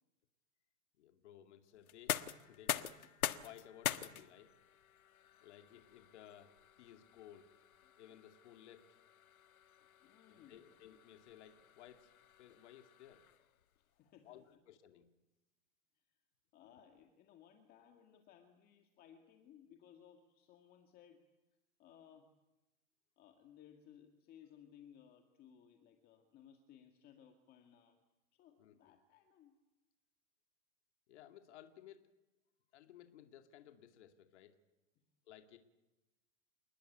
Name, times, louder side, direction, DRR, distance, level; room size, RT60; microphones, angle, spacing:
voice 1, 1.0-3.0 3.4-4.5 5.4-7.5 8.0-8.9 10.3-12.1 12.4-13.3 14.2-15.1 28.6-28.7 31.1-32.0 32.7-34.6 35.3-35.6, left 11 dB, 55° left, 6 dB, 2.5 m, -58 dB
sound 1, 1.8-13.6, left 10 dB, 85° left, 1.5 m, -45 dB
voice 2, 10.0-10.7 13.7-14.6 15.9-16.2 16.5-21.3 21.8-22.4 23.2-28.0 28.3-29.6 35.0-35.1, left 9 dB, 20° left, 5 dB, 1.9 m, -62 dB
28.0 x 20.0 x 9.3 m, 1.1 s
hypercardioid pair, 155°, 41 cm